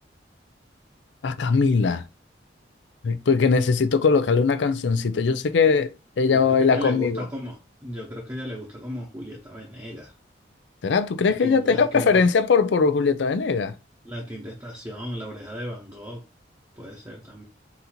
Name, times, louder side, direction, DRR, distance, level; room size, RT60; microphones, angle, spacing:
voice 1, 1.2-2.0 3.0-7.2 10.8-13.7, left 5 dB, 75° left, 0.5 m, -20 dB
voice 2, 6.3-10.1 11.2-12.3 14.0-16.2 16.8-17.4, equal, 15° right, 0.8 m, -36 dB
4.0 x 2.6 x 4.2 m
head